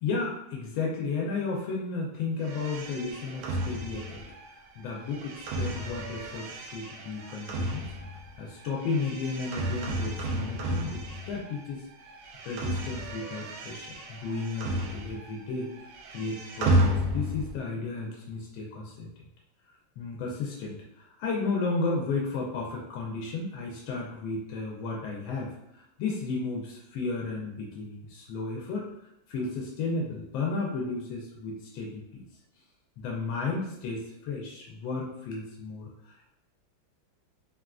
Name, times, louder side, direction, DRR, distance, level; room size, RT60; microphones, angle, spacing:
voice 1, 0.0-4.2 4.8-7.9 8.4-11.8 12.4-15.7 16.1-19.2 20.0-28.9 29.3-32.3 33.0-36.3, left 4 dB, 85° left, -3 dB, 1.4 m, -33 dB
sound 1, 2.4-11.7 12.0-15.4 15.7-17.6, right 1 dB, 75° right, 1.0 m, -32 dB
3.6 x 2.4 x 2.3 m, 0.83 s
omnidirectional pair, 2.1 m